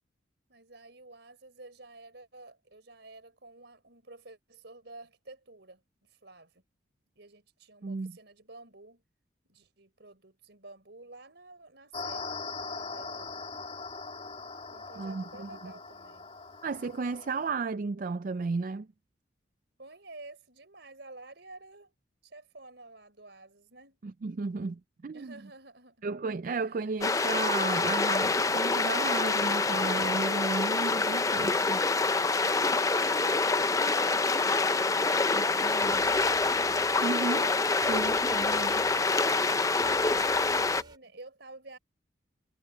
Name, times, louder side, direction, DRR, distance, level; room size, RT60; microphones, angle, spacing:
voice 1, 0.5-6.6 7.1-9.0 9.4-13.5 14.7-16.3 19.8-21.9 22.2-24.0 25.1-26.1 26.5-27.1 40.3-41.8, right 2 dB, 65° right, 4.7 m, -51 dB
voice 2, 7.8-8.1 15.0-15.7 16.6-18.9 24.0-25.3 26.0-31.8 35.3-36.0 37.0-37.6 37.8-39.0, right 4 dB, 45° right, 0.4 m, -34 dB
sound 1, 11.9-17.5, left 4 dB, 30° left, 2.3 m, -41 dB
sound 2, 27.0-40.8, left 3 dB, 15° left, 0.5 m, -26 dB
sound 3, 35.5-41.0, right 1 dB, 25° right, 2.9 m, -55 dB
head